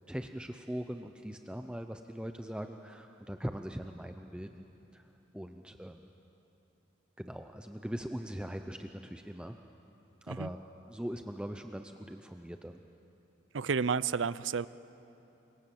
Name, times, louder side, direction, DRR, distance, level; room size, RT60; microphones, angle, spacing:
voice 1, 0.1-4.6 4.9-5.1 5.3-6.1 7.2-9.6 10.2-10.6 10.9-12.8, equal, 5° right, 6 dB, 0.6 m, -41 dB
voice 2, 13.5-14.7, right 5 dB, 85° right, 17 dB, 0.6 m, -31 dB
28.5 x 24.5 x 7.8 m, 3.0 s
head